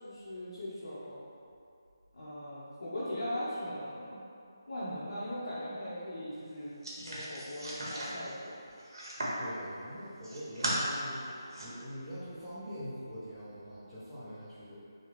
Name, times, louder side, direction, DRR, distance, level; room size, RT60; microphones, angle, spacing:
voice 1, 0.0-1.2 2.1-4.2 4.7-8.6, equal, 85° left, -13 dB, 0.9 m, -39 dB
sound 1, 6.8-9.5 10.0-10.8 11.2-11.7, right 1 dB, 70° right, 0.9 m, -37 dB
voice 2, 9.4-14.8, equal, 5° left, -16 dB, 1.0 m, -43 dB
3.4 x 2.3 x 3.1 m, 2.5 s
figure-of-eight pair, 160°, 2 cm